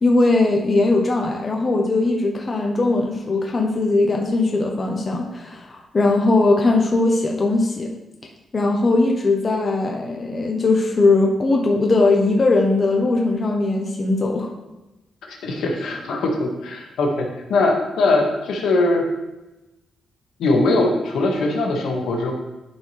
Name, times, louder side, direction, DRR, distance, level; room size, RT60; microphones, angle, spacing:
voice 1, 0.0-7.9 8.5-14.5, left 2 dB, 25° left, 1 dB, 0.8 m, -19 dB
voice 2, 15.3-19.0 20.4-22.3, left 2 dB, 80° left, 1 dB, 1.5 m, -21 dB
11.5 x 4.6 x 3.2 m, 1.0 s
wide cardioid pair, 170°, 0 cm